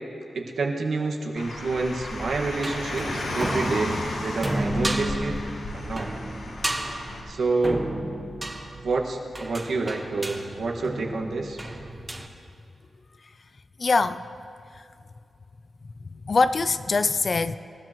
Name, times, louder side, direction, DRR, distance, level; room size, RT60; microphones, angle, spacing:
voice 1, 0.3-5.4 5.7-6.1 7.3-7.8 8.8-11.6, right 3 dB, 65° right, 0 dB, 1.7 m, -28 dB
Car, 1.4-7.2, left 2 dB, 70° left, 3.7 m, -34 dB
sound 1, 2.2-12.3, right 1 dB, 15° right, 0.9 m, -33 dB
voice 2, 13.8-14.2 14.7-14.8 16.0-17.6, left 3 dB, 35° left, 12 dB, 0.4 m, -23 dB
27.0 x 16.0 x 3.1 m, 2.6 s
wide cardioid pair, 175°, 0 cm